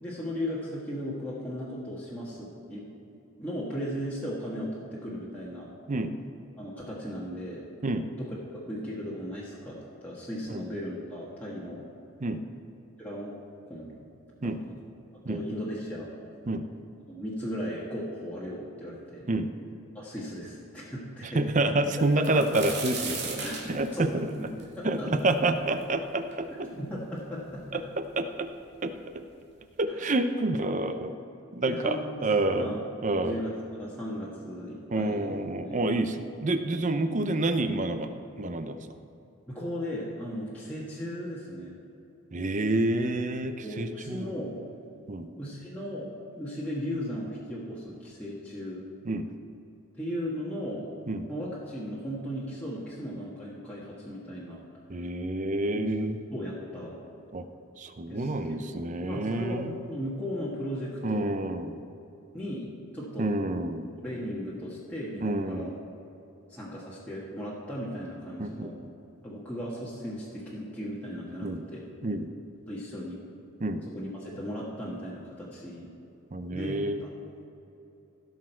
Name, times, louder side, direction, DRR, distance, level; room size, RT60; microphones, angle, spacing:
voice 1, 0.0-2.8 3.4-5.7 6.6-7.6 8.2-11.8 13.0-13.3 13.7-13.9 14.4-14.8 15.3-16.1 17.1-19.3 19.9-21.4 22.1-22.8 23.4-24.5 24.8-25.3 26.7-27.6 29.9-30.0 31.6-32.3 32.6-32.9 33.2-35.9 38.8-38.9 39.5-41.8 43.6-44.6 45.3-46.1 46.4-48.8 49.9-50.9 51.3-54.6 55.8-57.0 58.1-61.2 62.3-63.3 64.0-65.7 66.5-68.8 69.2-71.9 72.7-73.2 73.9-75.9 76.5-76.9, equal, 5° left, -7 dB, 1.4 m, -36 dB
voice 2, 21.2-24.3 24.8-26.7 27.7-28.5 28.8-28.9 29.8-31.2 31.5-32.7 33.0-33.4 34.9-38.1 38.4-38.8 42.3-44.3 45.1-45.3 49.1-49.3 51.1-51.3 54.9-56.2 57.3-57.4 57.8-59.7 61.0-61.8 63.2-63.9 65.2-65.8 68.4-68.7 71.4-71.6 72.0-72.3 73.6-73.8 76.3-77.0, right 2 dB, 35° right, 9 dB, 0.6 m, -28 dB
sound 1, 22.0-25.8 26.3-26.4 27.2-27.3 27.5-28.2 29.1-29.2 29.6-29.8, right 4 dB, 50° right, 2.0 m, -37 dB
16.0 x 6.3 x 4.5 m, 2.9 s
head